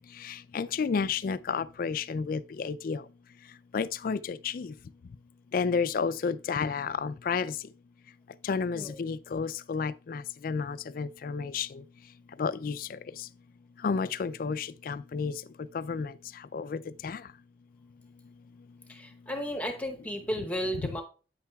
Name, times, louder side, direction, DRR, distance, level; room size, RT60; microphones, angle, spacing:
voice 1, 0.5-3.0 3.7-4.7 5.5-7.5 8.5-11.7 12.4-12.8 13.8-15.3 15.7-16.1 16.5-17.2, left 5 dB, 50° left, 0.3 m, -31 dB
voice 2, 18.9-21.0, equal, 10° left, 0.9 m, -34 dB
9.2 x 8.5 x 2.3 m
head